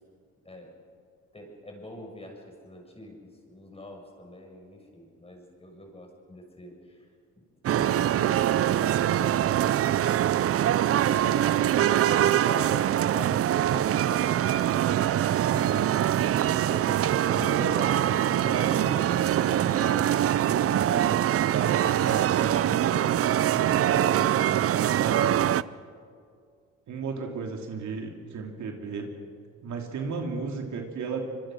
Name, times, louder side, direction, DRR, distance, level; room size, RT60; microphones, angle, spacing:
voice 1, 1.3-7.1 7.4-10.6 10.9-17.0 17.3-17.6, left 1 dB, 20° left, 1 dB, 6.7 m, -43 dB
sound 1, 7.6-25.6, right 11 dB, 50° right, 0.5 m, -24 dB
voice 2, 8.9-9.4 15.4-15.5 17.2-20.0 20.4-23.1 23.5-24.5 24.8-25.5 26.9-29.1 29.6-31.3, right 5 dB, 70° right, 2 dB, 3.0 m, -34 dB
25.0 x 23.0 x 6.4 m, 2.2 s
cardioid pair, 90°, 30 cm